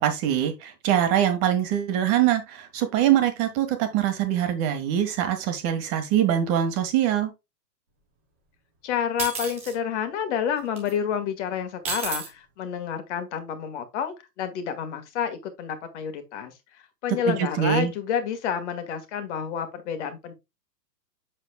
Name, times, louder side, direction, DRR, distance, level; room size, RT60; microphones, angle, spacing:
voice 1, 0.0-7.3 17.2-17.9, right 10 dB, 30° right, 1.4 m, -23 dB
voice 2, 8.8-20.3, left 8 dB, 45° left, 1.8 m, -29 dB
Dropping Fork Linoleum, 9.2-9.7 10.8-10.9 11.8-12.3, right 5 dB, 10° right, 0.4 m, -31 dB
7.2 x 6.8 x 2.2 m
hypercardioid pair, 130°, 50 cm